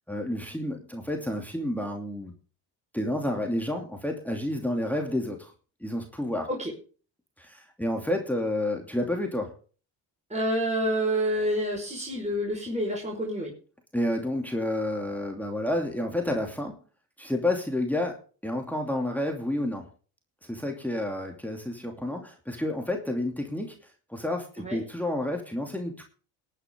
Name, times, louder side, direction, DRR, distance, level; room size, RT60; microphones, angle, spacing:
voice 1, 0.1-2.3 2.9-5.5 5.8-6.5 7.4-9.5 13.9-16.7 17.2-18.2 18.4-19.9 20.5-23.8 24.1-26.0, left 1 dB, 5° left, 2 dB, 2.7 m, -30 dB
voice 2, 10.3-13.5 24.6-24.8, equal, 15° right, -1 dB, 4.9 m, -28 dB
20.5 x 9.2 x 3.7 m, 0.38 s
supercardioid pair, 65°, 50 cm